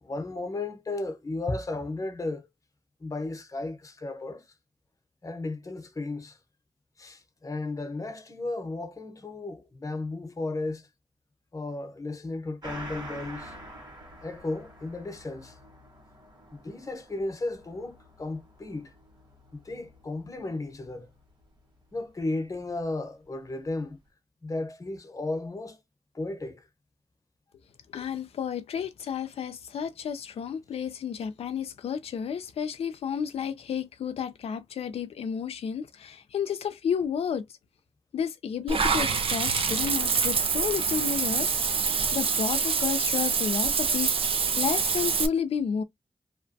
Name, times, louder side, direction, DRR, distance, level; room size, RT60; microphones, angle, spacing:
voice 1, 0.0-2.5 3.0-4.4 5.2-6.4 7.0-10.9 11.5-13.5 14.2-15.6 16.5-18.9 19.5-21.1 21.9-24.0 24.4-25.8 26.1-26.7, left 2 dB, 35° left, 0.8 m, -34 dB
Gong, 12.6-21.6 21.9-22.0, right 1 dB, 45° right, 1.5 m, -47 dB
voice 2, 27.9-37.4 38.1-44.1 44.6-45.8, left 7 dB, 85° left, 0.4 m, -31 dB
Water / Bathtub (filling or washing), 38.7-45.3, right 5 dB, 65° right, 0.5 m, -26 dB
2.9 x 2.1 x 2.6 m
cardioid pair, 70°, 10 cm